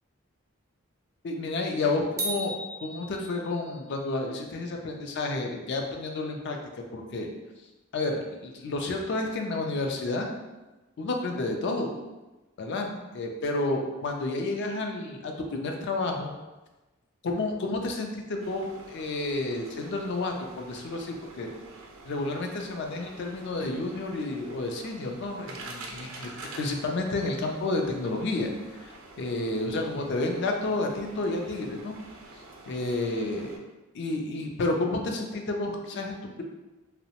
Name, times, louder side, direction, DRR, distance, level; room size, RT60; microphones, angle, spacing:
voice 1, 1.2-2.5 2.8-6.6 6.9-7.3 7.9-10.3 11.0-12.0 12.6-16.3 17.2-21.5 22.1-26.3 26.6-32.0 32.7-33.6 33.9-36.4, left 2 dB, 60° left, 3 dB, 0.4 m, -30 dB
sound 1, 2.2-3.8, right 1 dB, 15° right, 0.3 m, -35 dB
sound 2, 18.4-33.6, right 2 dB, 90° right, 0.5 m, -47 dB
2.7 x 2.0 x 2.8 m, 1.1 s
head